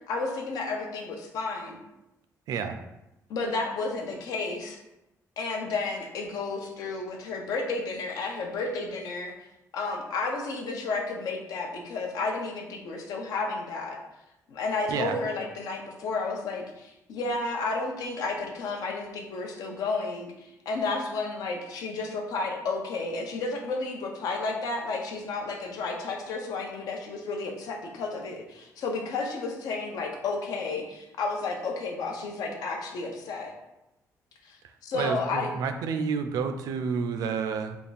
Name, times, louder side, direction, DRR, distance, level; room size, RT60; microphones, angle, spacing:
voice 1, 0.1-1.8 3.3-4.8 5.4-9.3 9.7-14.0 14.5-33.5 34.4-35.5, left 3 dB, 80° left, 2 dB, 0.7 m, -32 dB
voice 2, 34.9-37.8, right 6 dB, 75° right, 8 dB, 0.4 m, -30 dB
3.4 x 2.4 x 4.0 m, 0.91 s
cardioid pair, 145°, 6 cm